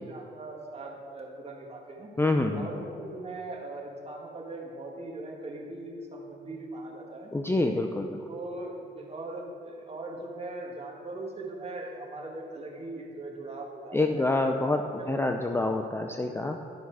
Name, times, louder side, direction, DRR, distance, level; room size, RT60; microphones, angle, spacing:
voice 1, 0.0-2.1 2.5-7.3 8.3-14.3 14.9-15.1, right 2 dB, 30° right, -1 dB, 1.9 m, -40 dB
voice 2, 2.2-2.7 7.3-8.2 13.9-16.6, left 2 dB, 10° left, 4 dB, 0.5 m, -27 dB
12.0 x 5.7 x 4.8 m, 2.6 s
cardioid pair, 90°, 20 cm